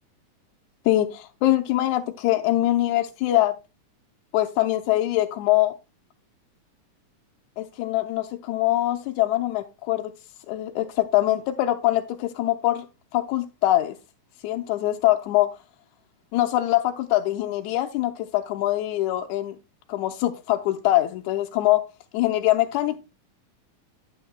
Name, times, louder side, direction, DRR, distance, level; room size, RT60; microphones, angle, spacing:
voice 1, 0.9-3.6 4.3-5.7 7.6-10.1 10.5-12.9 13.1-14.0 14.4-15.5 16.3-19.6 19.9-21.9 22.1-23.0, left 15 dB, 80° left, 1.9 m, -23 dB
12.0 x 7.9 x 2.2 m
omnidirectional pair, 3.6 m